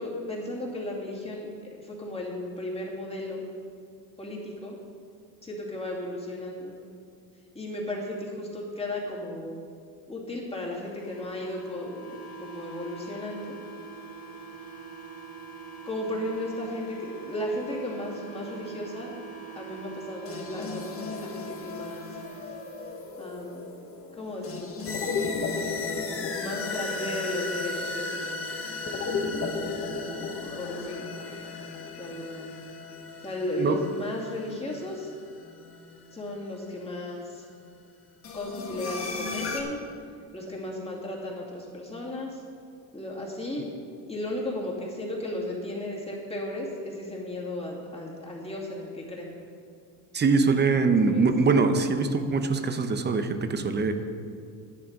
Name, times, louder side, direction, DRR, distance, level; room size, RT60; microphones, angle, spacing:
voice 1, 0.0-1.5 1.8-3.4 4.2-4.7 5.4-6.7 7.5-9.6 10.1-13.5 15.8-19.1 19.5-22.0 23.2-23.7 24.1-24.7 26.4-28.4 30.6-31.1 32.0-32.5 33.2-35.1 36.1-37.5 38.3-39.8 40.3-42.4 42.9-43.6 44.1-49.3 51.0-51.2, left 1 dB, 15° left, -4 dB, 2.6 m, -35 dB
TV rack device, 10.9-23.0, right 4 dB, 55° left, 3.2 m, -44 dB
sound 1, 20.2-36.3 38.2-39.6, left 4 dB, 35° left, 1.6 m, -34 dB
voice 2, 50.1-53.9, right 4 dB, 25° right, 8 dB, 0.8 m, -23 dB
11.0 x 9.5 x 5.3 m, 2.3 s
cardioid pair, 115°, 41 cm